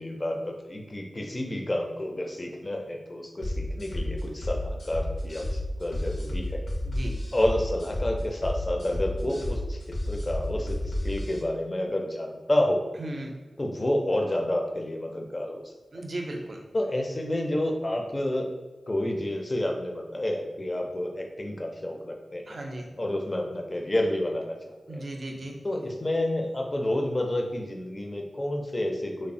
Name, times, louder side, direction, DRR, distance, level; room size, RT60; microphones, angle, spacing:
voice 1, 0.0-6.6 7.3-9.8 10.1-12.8 13.6-15.6 15.9-16.0 16.7-18.5 18.9-22.4 23.0-25.0 25.6-29.3, left 1 dB, 30° left, 2 dB, 0.4 m, -29 dB
sound 1, 3.4-11.4, left 1 dB, 85° left, 0.6 m, -31 dB
voice 2, 13.0-13.3 15.9-16.6 22.5-22.9 24.9-25.6, right 1 dB, 60° right, 1 dB, 0.4 m, -36 dB
3.0 x 2.0 x 2.5 m, 1.1 s
cardioid pair, 60°, 0 cm